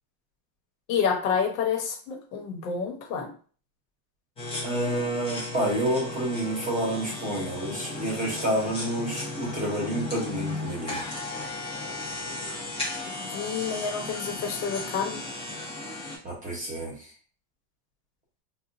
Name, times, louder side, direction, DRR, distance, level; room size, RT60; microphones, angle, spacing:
voice 1, 0.9-3.3 13.1-15.2, left 6 dB, 80° left, 2 dB, 1.2 m, -29 dB
sound 1, 4.4-16.2, left 2 dB, 10° left, 0.6 m, -35 dB
voice 2, 4.6-11.0 16.2-17.1, right 1 dB, 15° right, -2 dB, 1.0 m, -29 dB
4.2 x 2.4 x 2.5 m, 0.42 s
supercardioid pair, 165°, 47 cm